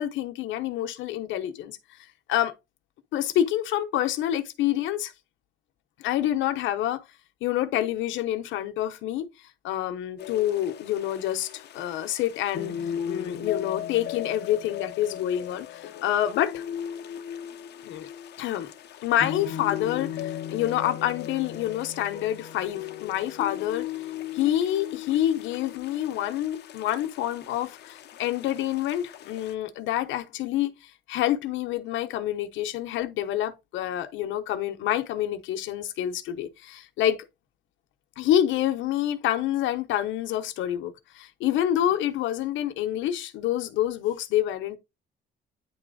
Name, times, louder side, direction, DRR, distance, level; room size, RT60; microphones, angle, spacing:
voice 1, 0.0-1.8 2.3-2.5 3.1-5.1 6.0-7.0 7.4-9.3 9.6-12.7 13.1-16.6 17.8-18.1 18.4-18.7 19.0-23.9 24.3-30.7 31.1-37.2 38.2-44.8, left 12 dB, 90° left, 1.0 m, -27 dB
sound 1, 10.2-29.5, left 10 dB, 60° left, 0.9 m, -37 dB
9.6 x 3.5 x 3.8 m
cardioid pair, 145°, 19 cm